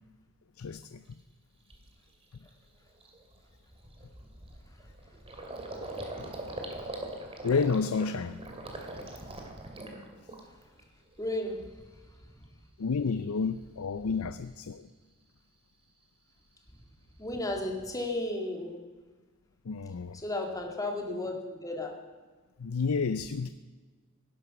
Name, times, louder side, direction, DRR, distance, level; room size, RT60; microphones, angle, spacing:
voice 1, 0.6-1.2 7.4-8.4 12.8-14.9 19.6-20.2 22.6-23.5, left 5 dB, 90° left, 12 dB, 0.5 m, -30 dB
Gurgling, 1.1-1.2 1.7-1.9 2.3-2.5 2.7-10.8 11.1-11.8, right 1 dB, 30° right, 2.5 m, -42 dB
voice 2, 11.2-11.9 17.2-18.8 20.1-22.1, left 1 dB, 15° left, 2 dB, 2.3 m, -34 dB
18.0 x 11.0 x 6.0 m, 1.4 s
head